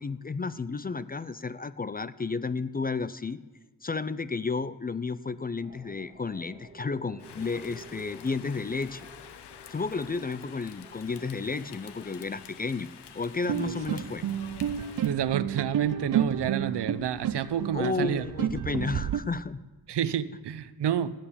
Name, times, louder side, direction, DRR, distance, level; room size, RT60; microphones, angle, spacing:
voice 1, 0.0-3.4 3.8-9.1 9.7-12.9 13.1-14.2 17.7-19.6, left 4 dB, 25° left, 15 dB, 0.4 m, -32 dB
sound 1, 5.6-17.2, right 1 dB, 15° right, 2.8 m, -54 dB
Rain, 7.2-15.2, left 8 dB, 85° left, 0.9 m, -48 dB
sound 2, 13.5-19.2, right 9 dB, 55° right, 0.5 m, -30 dB
voice 2, 15.0-18.2 19.9-21.1, right 9 dB, 85° right, 14 dB, 0.8 m, -29 dB
17.0 x 9.1 x 7.0 m, 1.2 s
wide cardioid pair, 110°, 40 cm